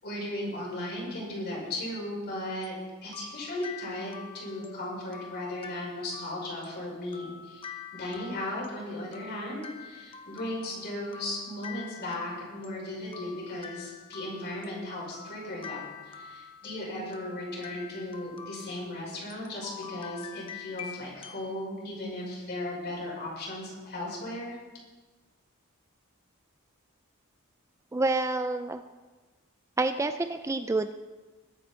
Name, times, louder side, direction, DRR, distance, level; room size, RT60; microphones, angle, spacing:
voice 1, 0.0-2.8 3.0-24.6, left 1 dB, 50° left, -4 dB, 5.5 m, -36 dB
sound 1, 2.6-21.5, left 7 dB, 25° left, 0.9 m, -46 dB
voice 2, 27.9-28.8 29.8-30.9, right 2 dB, 15° right, 9 dB, 0.3 m, -28 dB
21.5 x 9.4 x 4.4 m, 1.3 s
head